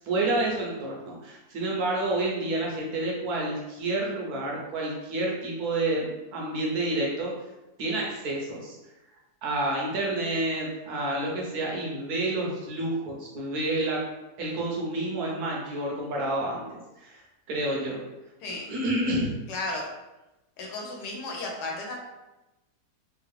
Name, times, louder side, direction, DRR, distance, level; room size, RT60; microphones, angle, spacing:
voice 1, 0.0-6.1 6.3-7.3 7.8-8.8 9.4-14.0 14.4-17.2 17.5-18.0 18.5-19.3, right 2 dB, 70° right, -2 dB, 1.3 m, -29 dB
voice 2, 19.5-19.8 20.6-22.0, left 2 dB, 80° left, 0 dB, 1.4 m, -34 dB
3.5 x 2.4 x 3.3 m, 1.0 s
omnidirectional pair, 1.7 m